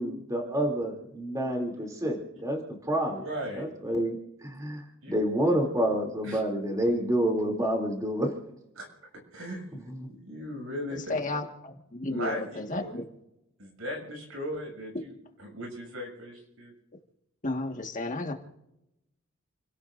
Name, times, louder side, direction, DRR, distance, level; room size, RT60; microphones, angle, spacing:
voice 1, 0.0-2.6 2.9-3.2 3.6-4.1 4.4-4.8 5.1-8.3 9.9-10.1, equal, 15° right, 1 dB, 3.0 m, -28 dB
voice 2, 3.1-3.7 5.0-5.1 6.2-6.4 8.8-8.9 9.3-9.9 10.3-11.2 12.1-12.5 12.7-12.9 13.6-15.1 15.4-16.7, equal, 75° right, 1 dB, 7.1 m, -37 dB
voice 3, 10.9-13.0 17.4-18.3, left 2 dB, 40° left, 3 dB, 1.7 m, -33 dB
29.5 x 17.5 x 2.6 m, 0.85 s
head